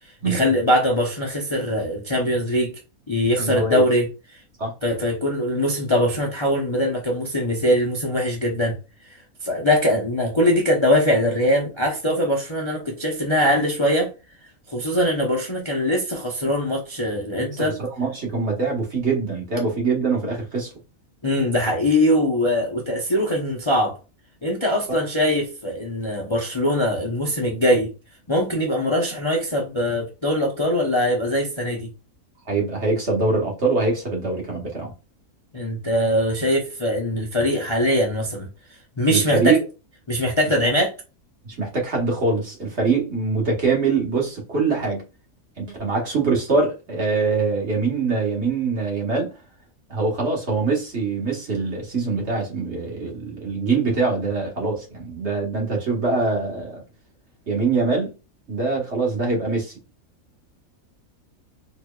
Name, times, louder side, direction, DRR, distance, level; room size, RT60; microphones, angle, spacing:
voice 1, 0.2-2.8 3.1-4.1 4.8-8.8 9.1-9.2 9.4-14.1 14.7-17.8 21.2-24.0 24.4-27.9 28.3-31.9 35.5-38.5 39.0-39.6 40.1-40.9, left 1 dB, 25° left, 0.7 m, -22 dB
voice 2, 3.4-3.8 4.6-4.7 17.5-17.6 18.0-20.7 32.5-34.9 39.1-39.6 41.4-45.0 45.6-49.3 49.9-56.8 57.5-58.1 58.5-59.7, right 4 dB, 50° right, 1.6 m, -23 dB
4.5 x 3.1 x 2.3 m
omnidirectional pair, 1.5 m